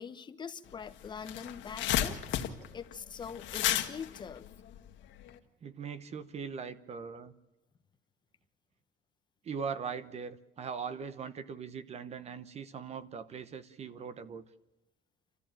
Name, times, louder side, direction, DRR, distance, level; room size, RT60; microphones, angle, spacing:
voice 1, 0.0-2.2 2.7-4.4, left 6 dB, 25° left, 0.9 m, -43 dB
sound 1, 0.7-0.8 1.0-5.3, left 12 dB, 80° left, 1.7 m, -33 dB
voice 2, 5.6-7.3 9.4-14.5, right 6 dB, 35° right, 0.9 m, -40 dB
28.5 x 14.0 x 9.0 m
cardioid pair, 170°, 19 cm